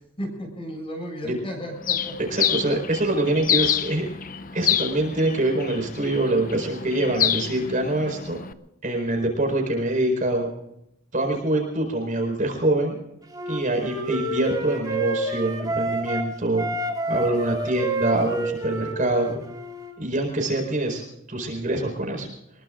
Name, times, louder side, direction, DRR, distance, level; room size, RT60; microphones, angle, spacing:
voice 1, 0.2-2.3, equal, 30° left, 1 dB, 7.0 m, -34 dB
Bird, 1.8-8.5, left 9 dB, 45° left, 0.6 m, -27 dB
voice 2, 2.3-4.1 4.5-8.4 8.8-10.5 11.1-13.0 13.5-16.7 17.1-19.4 20.0-21.0 21.3-22.3, right 1 dB, 40° right, 2 dB, 4.6 m, -24 dB
Wind instrument woodwind instrument, 13.3-16.3 16.6-19.9, right 2 dB, 20° right, 4.0 m, -29 dB
25.0 x 21.5 x 2.5 m, 0.81 s
head